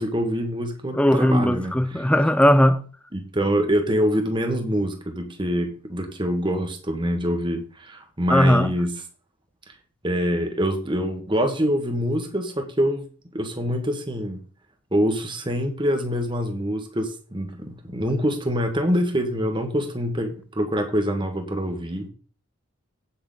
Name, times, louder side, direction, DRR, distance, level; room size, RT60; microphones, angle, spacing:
voice 1, 0.0-2.1 3.1-8.9 9.7-9.8 10.0-13.1 13.3-14.4 14.9-22.1, equal, 25° right, 1.6 m, -25 dB
voice 2, 0.9-2.8 8.3-8.7, left 1 dB, 5° left, 0.6 m, -18 dB
8.5 x 8.4 x 4.1 m
head